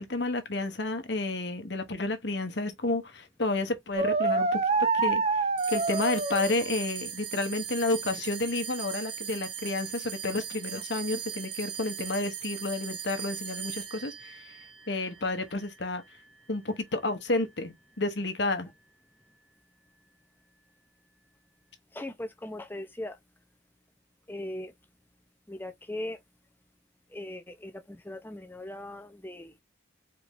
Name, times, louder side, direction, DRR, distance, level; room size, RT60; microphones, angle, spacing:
voice 1, 0.0-4.6 4.9-14.6 14.9-16.0 16.5-18.7, left 2 dB, 60° left, 1.1 m, -31 dB
sound 1, 4.0-6.7, right 4 dB, 30° right, 0.5 m, -26 dB
sound 2, 5.6-16.2, right 9 dB, 60° right, 1.3 m, -39 dB
voice 2, 21.9-23.2 24.3-24.7 25.5-26.2 27.1-29.5, left 1 dB, 10° left, 0.7 m, -39 dB
4.4 x 3.8 x 3.1 m
head